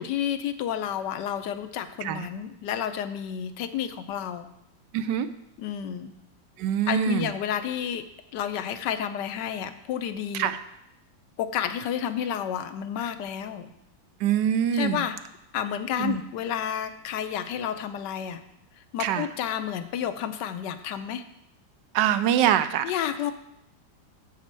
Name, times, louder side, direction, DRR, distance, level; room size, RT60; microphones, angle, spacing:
voice 1, 0.0-4.5 5.6-6.1 6.9-8.0 8.3-10.5 11.4-13.7 14.7-15.2 15.5-18.4 18.9-21.2 22.8-23.3, left 9 dB, 70° left, 10 dB, 1.2 m, -30 dB
voice 2, 4.9-5.3 6.6-7.3 10.3-10.6 14.2-15.1 16.0-16.2 19.0-19.3 21.9-22.9, right 9 dB, 75° right, 12 dB, 1.1 m, -24 dB
10.5 x 4.2 x 7.4 m, 0.82 s
omnidirectional pair, 2.1 m